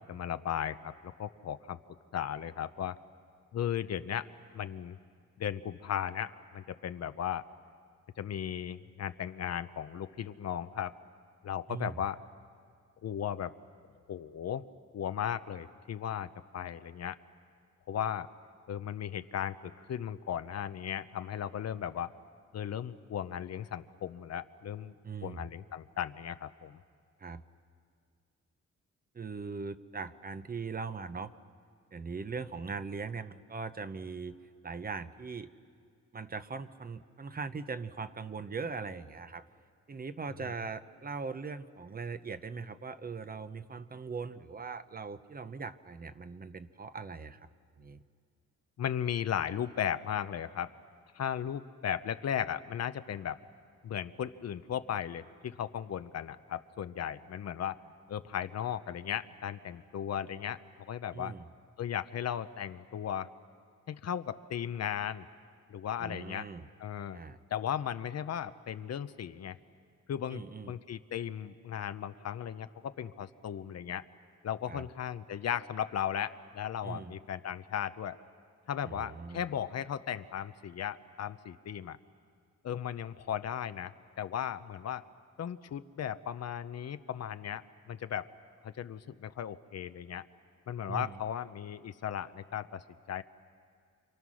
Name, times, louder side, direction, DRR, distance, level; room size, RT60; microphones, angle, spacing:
voice 1, 0.0-1.8 2.1-3.0 3.5-4.3 4.5-5.0 5.4-7.5 8.2-10.9 11.4-12.2 13.0-13.5 14.1-14.6 14.9-16.3 16.5-17.2 17.9-18.3 18.7-22.1 22.5-24.9 25.2-26.8 48.8-50.7 51.1-53.4 53.8-57.8 58.1-61.3 61.8-63.3 63.9-65.3 65.7-66.5 66.8-67.2 67.5-69.6 70.1-74.0 74.4-78.2 78.7-82.0 82.6-85.0 85.4-88.3 88.6-90.2 90.7-92.8 93.1-93.2, left 9 dB, 60° left, 12 dB, 0.8 m, -36 dB
voice 2, 25.0-25.4 27.2-27.4 29.1-31.3 31.9-34.3 34.6-35.5 36.1-39.5 39.9-47.5 47.8-48.0 61.1-61.4 66.0-66.7 67.1-67.4 70.3-70.8 74.7-74.8 76.8-77.1 78.8-79.4 90.9-91.2, right 4 dB, 30° right, 11 dB, 0.8 m, -40 dB
28.5 x 27.5 x 6.3 m, 2.2 s
wide cardioid pair, 125°, 29 cm